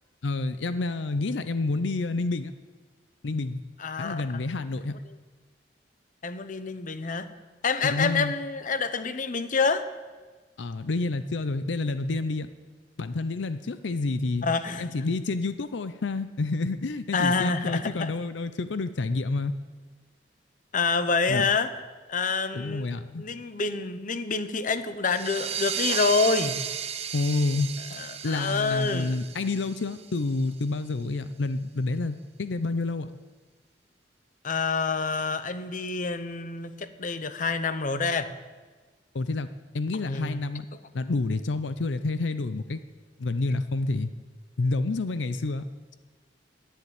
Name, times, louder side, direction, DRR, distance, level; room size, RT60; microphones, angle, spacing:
voice 1, 0.2-2.5 3.2-3.6 4.0-5.0 7.8-8.3 10.6-12.5 13.0-14.4 14.8-19.5 21.3-21.5 22.5-23.2 27.1-27.7 28.2-33.1 39.1-39.5 39.7-40.7 40.9-42.8 43.2-44.1 44.6-45.6, left 3 dB, 85° left, 12 dB, 0.6 m, -29 dB
voice 2, 3.8-4.2 6.2-7.3 7.6-9.9 14.4-14.9 17.1-18.1 20.7-21.7 22.1-22.9 23.2-26.6 28.0-29.2 34.4-38.3 40.0-40.4, left 4 dB, 45° left, 11 dB, 0.8 m, -27 dB
sound 1, 25.1-30.4, right 8 dB, 35° right, 0.6 m, -34 dB
11.5 x 10.0 x 9.0 m, 1.4 s
head